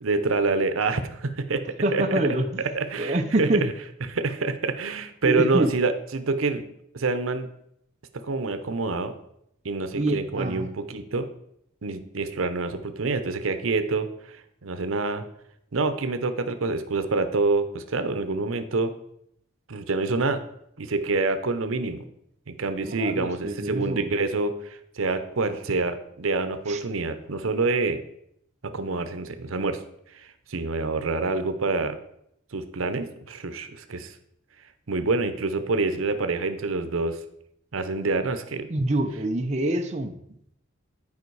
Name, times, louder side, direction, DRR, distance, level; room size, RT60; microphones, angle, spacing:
voice 1, 0.0-1.6 1.9-2.0 2.7-3.5 4.1-6.6 6.9-7.5 8.1-9.1 9.6-11.3 11.8-15.2 15.7-18.9 19.7-20.4 20.8-22.0 22.6-28.0 28.6-29.8 30.2-32.0 32.5-34.1 34.9-37.2 37.7-38.7, right 3 dB, 90° right, 10 dB, 0.8 m, -27 dB
voice 2, 1.8-2.6 3.0-3.7 5.2-5.7 10.0-10.7 22.8-24.1 26.7-26.8 38.7-40.2, right 1 dB, 35° right, 4 dB, 0.6 m, -26 dB
9.6 x 5.1 x 4.7 m, 0.75 s
head